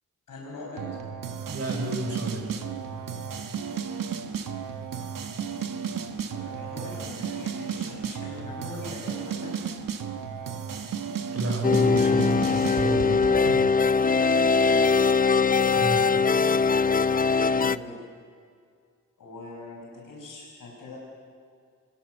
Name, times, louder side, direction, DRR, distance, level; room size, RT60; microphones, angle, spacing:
voice 1, 0.3-0.9 6.3-9.5 17.5-18.0 19.2-21.0, left 2 dB, 85° left, -3 dB, 5.5 m, -41 dB
sound 1, 0.8-13.7, right 7 dB, 80° right, 1.4 m, -34 dB
voice 2, 1.5-2.6 11.3-13.4 15.7-16.0, right 1 dB, 50° right, 2 dB, 4.8 m, -30 dB
sound 2, 11.6-17.8, left 5 dB, 25° left, 0.5 m, -21 dB
24.0 x 21.5 x 6.6 m, 2.2 s
cardioid pair, 80°, 32 cm